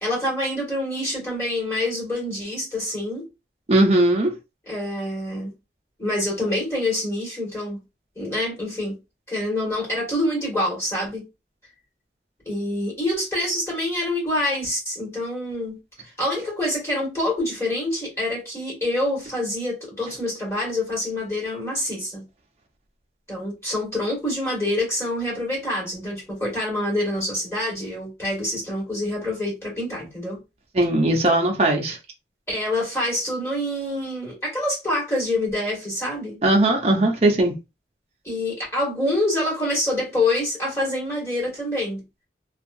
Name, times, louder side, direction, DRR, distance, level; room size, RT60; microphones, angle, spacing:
voice 1, 0.0-3.2 4.7-5.5 6.0-7.8 8.1-8.9 9.3-11.2 12.4-15.8 16.2-22.2 23.3-30.4 32.5-36.4 38.2-42.0, left 1 dB, 15° left, 1.6 m, -26 dB
voice 2, 3.7-4.3 30.7-32.0 36.4-37.6, right 1 dB, 35° right, 0.5 m, -19 dB
2.7 x 2.4 x 2.5 m
head